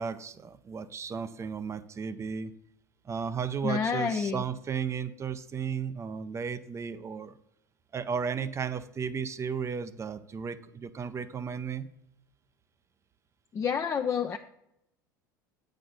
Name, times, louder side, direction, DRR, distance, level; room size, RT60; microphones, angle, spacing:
voice 1, 0.0-2.5 3.1-7.3 7.9-11.9, right 6 dB, 25° right, 13 dB, 0.5 m, -34 dB
voice 2, 3.6-4.4 13.5-14.4, left 6 dB, 25° left, 6 dB, 0.4 m, -29 dB
8.4 x 4.2 x 6.4 m, 0.81 s
hypercardioid pair, 75°, 11 cm